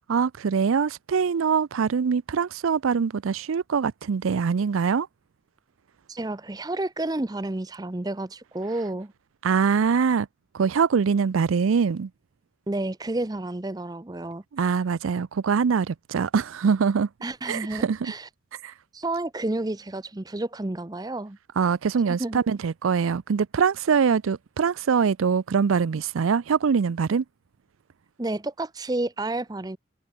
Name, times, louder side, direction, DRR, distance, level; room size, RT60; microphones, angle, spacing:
voice 1, 0.1-5.1 9.4-10.3 10.5-12.1 14.5-17.1 17.5-18.1 18.6-18.7 21.6-27.2, right 6 dB, 85° right, 0.4 m, -23 dB
voice 2, 6.1-9.1 12.7-14.7 17.2-18.3 18.9-21.4 22.2-22.4 28.2-29.8, right 2 dB, 20° right, 0.6 m, -30 dB
head